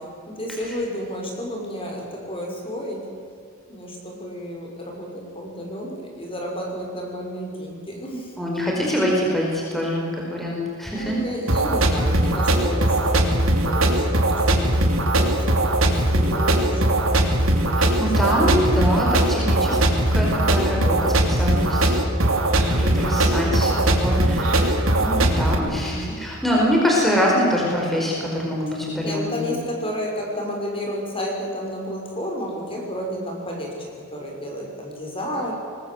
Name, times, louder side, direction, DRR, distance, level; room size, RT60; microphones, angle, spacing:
voice 1, 0.0-3.1 3.7-8.3 10.9-14.8 15.2-17.1 17.9-18.6 29.0-35.5, equal, 25° left, 0 dB, 5.9 m, -31 dB
voice 2, 8.4-11.2 17.8-19.8 20.1-21.9 22.6-29.4, equal, ahead, -3 dB, 4.9 m, -24 dB
sound 1, 11.5-25.5, right 1 dB, 80° right, 3.0 m, -20 dB
24.5 x 20.5 x 8.0 m, 2.5 s
head